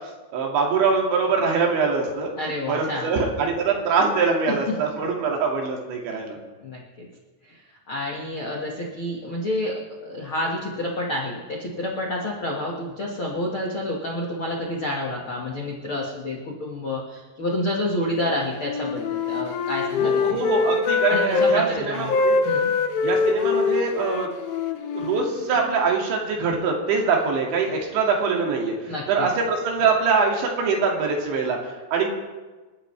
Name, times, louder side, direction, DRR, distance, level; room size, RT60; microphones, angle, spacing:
voice 1, 0.3-2.3 2.7-6.4 20.0-22.4 23.0-24.3 24.9-32.1, right 4 dB, 70° right, 0 dB, 4.5 m, -23 dB
voice 2, 2.4-3.1 4.7-4.8 6.6-7.1 7.4-7.6 7.9-20.2 21.1-22.1 22.4-22.7 28.9-29.3, left 1 dB, 75° left, -2 dB, 1.2 m, -29 dB
Wind instrument woodwind instrument, 18.6-21.6 22.1-25.9, left 4 dB, 90° left, 3.5 m, -24 dB
29.0 x 11.5 x 3.3 m, 1.3 s
omnidirectional pair, 5.5 m